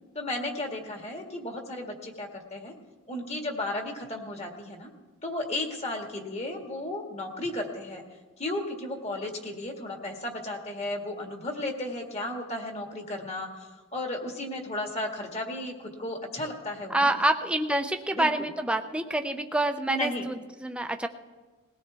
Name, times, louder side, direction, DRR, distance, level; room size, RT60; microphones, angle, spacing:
voice 1, 0.1-2.7 3.1-4.9 5.2-8.0 8.4-17.1 18.1-18.3 19.9-20.2, left 1 dB, 30° left, 2 dB, 1.8 m, -34 dB
voice 2, 16.9-21.1, right 1 dB, 5° right, 6 dB, 0.6 m, -27 dB
20.5 x 17.5 x 3.4 m, 1.3 s
head